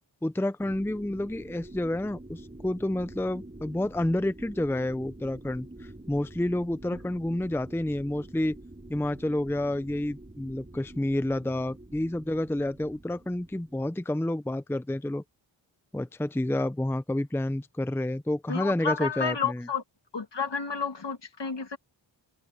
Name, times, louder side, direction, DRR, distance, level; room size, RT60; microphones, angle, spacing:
voice 1, 0.2-8.6 8.9-15.2 15.9-19.7, left 1 dB, 5° left, 0.7 m, -29 dB
sound 1, 0.6-13.9, right 1 dB, 20° right, 4.6 m, -47 dB
voice 2, 18.5-19.8 20.1-21.8, left 5 dB, 65° left, 2.5 m, -31 dB
wide cardioid pair, 95°, 45 cm